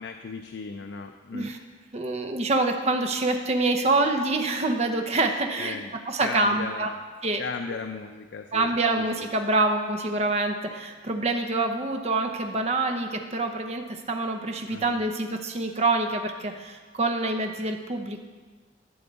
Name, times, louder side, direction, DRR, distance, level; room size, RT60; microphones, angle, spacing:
voice 1, 0.0-1.5 5.6-5.9 6.2-7.0 7.4-9.3 14.7-15.0, left 4 dB, 80° left, 6 dB, 0.4 m, -36 dB
voice 2, 1.9-5.8 6.1-6.9 7.2-7.4 8.5-18.2, right 2 dB, 35° right, 5 dB, 0.8 m, -26 dB
11.5 x 6.8 x 4.0 m, 1.4 s
head